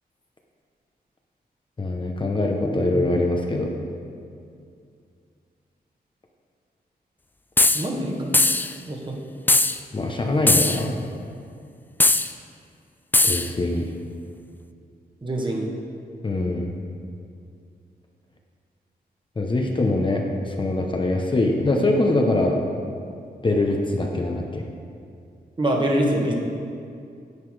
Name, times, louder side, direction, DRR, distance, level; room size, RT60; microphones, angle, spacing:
voice 1, 1.8-3.7 9.9-11.0 13.2-13.9 16.2-16.7 19.4-22.6 23.4-24.6, left 2 dB, 30° left, 1 dB, 0.9 m, -23 dB
sound 1, 7.6-7.9 8.3-8.7 9.5-9.8 10.5-10.8 12.0-12.3 13.1-13.5, left 2 dB, 10° left, 0.3 m, -18 dB
voice 2, 7.7-8.2 8.9-9.1 15.2-15.7 25.6-26.3, right 1 dB, 30° right, 0 dB, 1.5 m, -24 dB
9.7 x 8.1 x 4.8 m, 2.4 s
wide cardioid pair, 105°, 17 cm